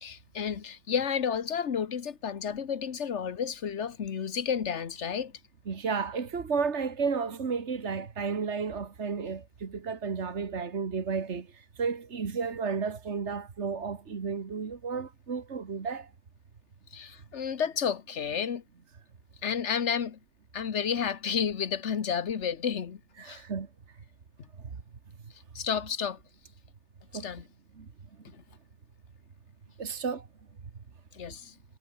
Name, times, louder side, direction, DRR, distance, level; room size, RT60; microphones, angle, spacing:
voice 1, 0.0-5.3 16.9-18.6 19.4-20.2 20.5-23.4 25.5-26.2 27.1-27.4 28.3-28.4 31.1-31.5, left 7 dB, 75° left, 1.5 m, -31 dB
voice 2, 5.7-11.5 11.8-16.1 23.2-23.7 27.1-27.2 27.8-27.9 29.8-30.3, right 5 dB, 75° right, 2.0 m, -32 dB
omnidirectional pair, 1.2 m